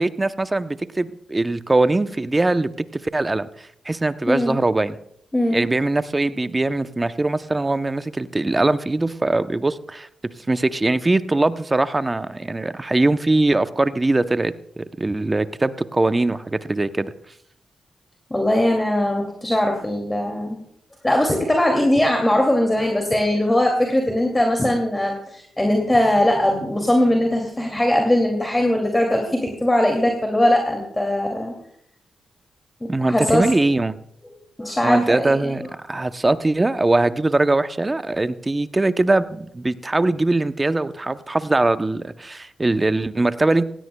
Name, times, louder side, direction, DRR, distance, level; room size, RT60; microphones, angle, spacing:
voice 1, 0.0-5.0 5.5-17.1 32.9-34.0 34.8-35.6 35.9-43.7, right 2 dB, 25° right, 12 dB, 0.7 m, -21 dB
voice 2, 4.3-4.6 5.3-5.7 18.3-20.6 21.0-31.5 32.8-33.4 34.6-35.5, left 1 dB, 15° left, 1 dB, 2.4 m, -20 dB
16.5 x 16.5 x 2.2 m, 0.71 s
cardioid pair, 65°, 0 cm